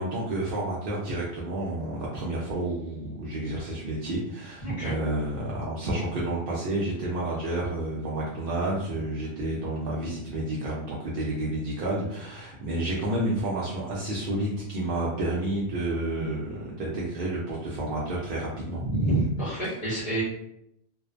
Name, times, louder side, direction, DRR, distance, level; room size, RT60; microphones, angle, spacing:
voice 1, 0.0-18.8, right 1 dB, 60° right, -6 dB, 0.5 m, -30 dB
voice 2, 4.6-5.0 18.8-20.2, right 1 dB, 45° left, -10 dB, 0.8 m, -27 dB
2.5 x 2.0 x 2.4 m, 0.77 s
omnidirectional pair, 1.3 m